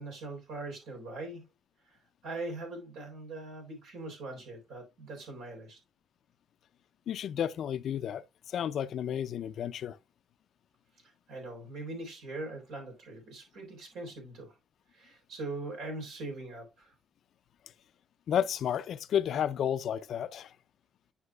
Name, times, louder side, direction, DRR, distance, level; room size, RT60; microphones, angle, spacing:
voice 1, 0.0-1.4 1.8-5.8 11.3-14.6 14.9-16.9, right 2 dB, 90° right, 3.9 m, -41 dB
voice 2, 7.1-10.0 18.3-20.5, left 9 dB, 70° left, 0.4 m, -32 dB
9.6 x 6.1 x 2.3 m
cardioid pair, 90°, 0 cm